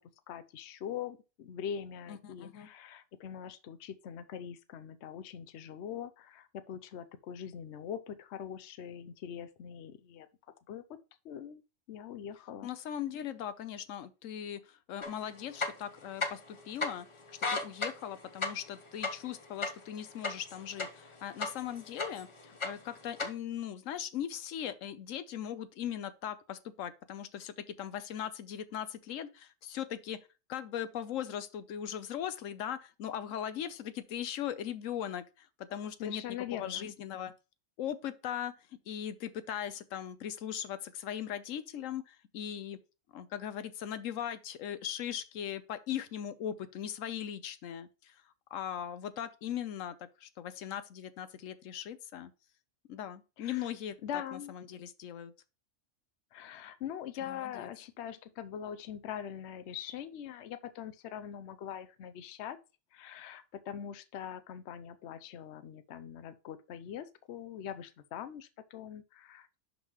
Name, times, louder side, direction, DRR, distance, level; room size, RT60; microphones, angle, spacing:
voice 1, 0.3-10.3 10.7-11.0 11.2-11.6 11.9-12.7 36.0-36.9 53.4-53.7 54.0-54.5 56.3-62.6 62.9-69.6, left 9 dB, 65° left, 0.9 m, -42 dB
voice 2, 2.1-2.7 12.6-17.1 17.5-30.2 30.5-36.2 36.5-37.3 37.8-42.8 43.1-48.2 48.5-52.3 52.9-54.0 54.3-55.3 57.3-57.7, left 10 dB, 85° left, 1.1 m, -39 dB
sound 1, 15.0-15.1 15.5-16.5 16.8-16.9 17.3-21.1 21.4-22.3 22.6-23.3, left 3 dB, 25° left, 0.9 m, -34 dB
11.0 x 3.9 x 3.0 m
omnidirectional pair, 1.3 m